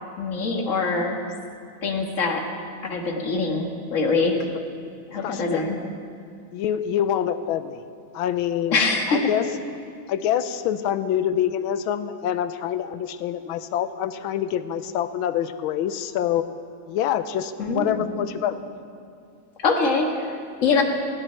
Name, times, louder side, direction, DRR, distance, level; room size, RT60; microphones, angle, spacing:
voice 1, 0.2-1.2 1.8-2.4 2.8-4.4 5.1-5.8 8.7-9.3 17.6-18.1 19.6-20.8, left 4 dB, 40° left, 2 dB, 1.8 m, -24 dB
voice 2, 5.2-5.7 6.5-7.8 8.1-8.8 9.1-9.5 10.1-16.5 16.9-18.6, left 10 dB, 80° left, 11 dB, 1.5 m, -26 dB
20.0 x 16.0 x 4.5 m, 2.3 s
omnidirectional pair, 2.2 m